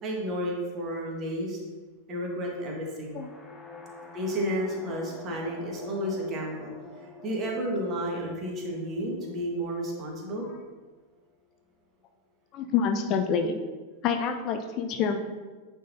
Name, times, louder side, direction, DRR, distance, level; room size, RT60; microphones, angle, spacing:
voice 1, 0.0-1.6 2.1-3.3 4.1-6.7 7.0-10.5, equal, 30° right, -1 dB, 1.4 m, -32 dB
sound 1, 3.1-11.0, left 3 dB, 15° left, 0.8 m, -48 dB
voice 2, 12.5-13.6 14.0-15.2, left 6 dB, 35° left, 6 dB, 0.4 m, -27 dB
9.3 x 3.8 x 2.7 m, 1.3 s
figure-of-eight pair, 90°, 0 cm